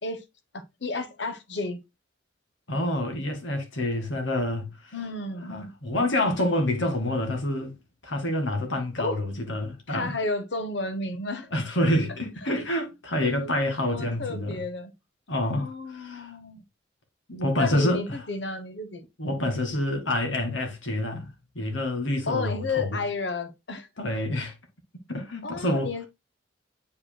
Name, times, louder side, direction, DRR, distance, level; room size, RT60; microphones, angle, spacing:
voice 1, 0.5-1.8 4.9-5.6 9.0-9.2 9.9-11.5 13.9-14.9 15.4-16.6 17.6-19.0 22.3-23.9 25.4-26.1, left 3 dB, 65° left, 1.1 m, -32 dB
voice 2, 2.7-4.7 5.5-7.7 8.0-10.1 11.5-14.6 15.3-16.3 17.3-18.0 19.2-21.3 21.6-23.0 24.0-24.5 25.1-25.9, left 1 dB, 85° left, 2.1 m, -27 dB
8.3 x 5.3 x 2.2 m
head